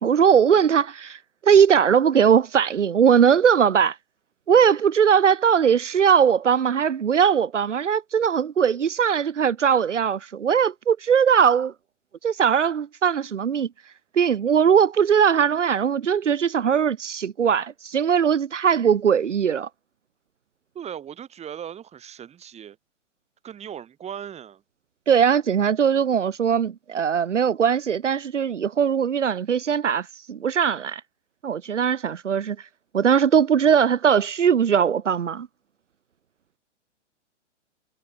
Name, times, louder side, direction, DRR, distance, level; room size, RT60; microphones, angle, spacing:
voice 1, 0.0-4.0 4.5-11.7 12.2-13.7 14.1-19.7 25.1-31.0 31.4-32.6 32.9-35.5, right 7 dB, 75° right, 1.4 m, -20 dB
voice 2, 20.7-22.8 23.4-24.6, right 9 dB, 15° right, 3.5 m, -38 dB
figure-of-eight pair, 115°, 37 cm